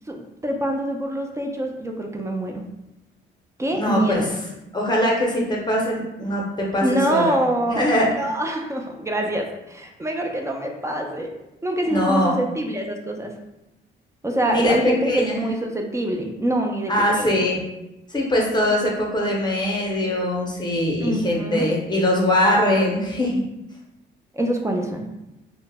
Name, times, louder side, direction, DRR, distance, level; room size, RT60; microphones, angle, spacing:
voice 1, 0.1-2.6 3.6-4.3 6.8-7.9 8.2-11.3 11.6-13.3 14.2-17.4 21.0-21.7 24.3-25.1, right 1 dB, 15° right, 2 dB, 0.3 m, -25 dB
voice 2, 3.7-4.3 4.7-7.3 7.7-8.1 11.9-12.4 14.4-15.4 16.9-17.6 18.1-23.4, left 1 dB, 20° left, -2 dB, 0.7 m, -22 dB
2.0 x 2.0 x 3.3 m, 0.92 s
cardioid pair, 90°, 20 cm